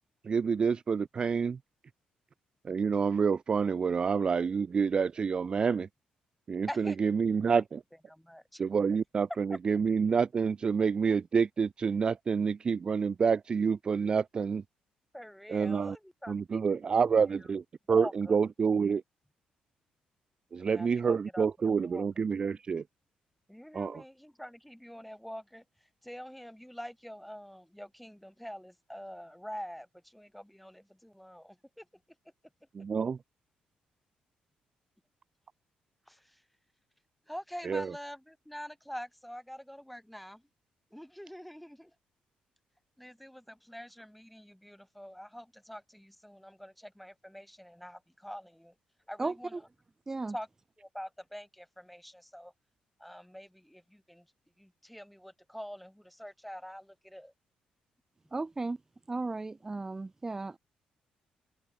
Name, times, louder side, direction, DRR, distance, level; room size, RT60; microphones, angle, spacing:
voice 1, 0.2-1.6 2.6-5.9 6.5-7.8 8.6-14.6 15.5-16.0 16.3-19.0 20.5-22.8 23.7-24.0 32.7-33.2 37.6-37.9, right 6 dB, 35° right, 0.4 m, -28 dB
voice 2, 8.1-8.6 9.5-9.6 15.1-17.3 17.9-18.4 20.6-22.0 23.5-25.6 26.0-31.9 36.1-36.4 37.3-40.4 40.9-41.9 43.0-48.7 49.1-49.5 50.3-50.5 50.8-52.5 53.0-54.3 54.6-57.3, equal, ahead, 2.3 m, -45 dB
voice 3, 49.2-49.6 50.1-50.3 58.3-58.8 59.1-60.6, right 3 dB, 20° right, 0.8 m, -35 dB
cardioid pair, 115°, 3 cm